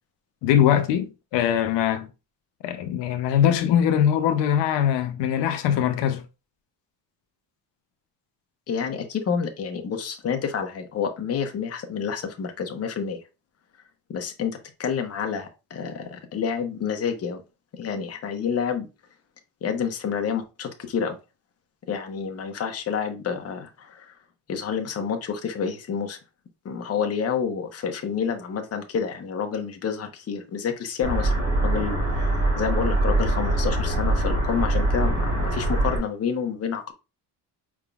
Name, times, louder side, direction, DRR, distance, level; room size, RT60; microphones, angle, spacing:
voice 1, 0.4-2.1 2.6-6.2, left 9 dB, 85° left, 0.7 m, -22 dB
voice 2, 8.7-13.2 14.1-17.4 17.8-18.9 19.6-21.2 21.9-24.2 24.5-26.2 26.6-31.3 31.6-36.9, left 6 dB, 35° left, 0.9 m, -29 dB
sound 1, 31.0-36.0, right 1 dB, 35° right, 2.3 m, -23 dB
5.1 x 3.6 x 2.3 m
cardioid pair, 145°, 41 cm